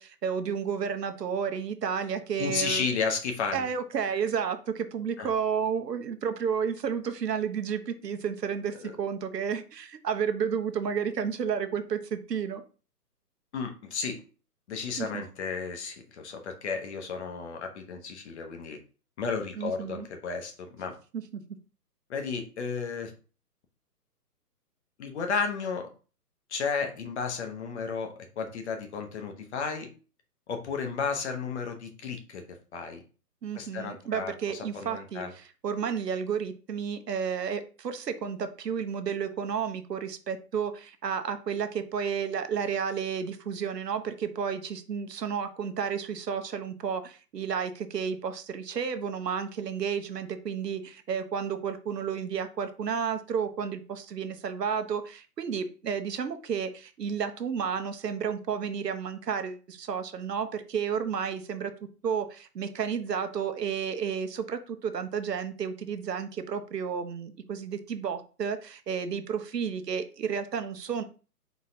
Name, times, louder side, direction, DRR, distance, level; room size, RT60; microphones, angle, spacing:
voice 1, 0.0-2.9 3.5-12.6 15.0-15.2 19.6-20.1 21.1-21.4 33.4-71.0, right 7 dB, 80° right, 8 dB, 0.9 m, -32 dB
voice 2, 2.4-3.7 5.2-5.3 8.8-9.0 13.5-14.2 14.7-18.8 19.2-20.9 22.1-23.1 25.0-25.9 26.5-29.9 30.5-32.4 32.7-33.0 33.5-34.3 34.7-35.3, left 5 dB, 45° left, 5 dB, 0.9 m, -33 dB
4.0 x 3.7 x 2.7 m, 0.36 s
hypercardioid pair, 135°, 48 cm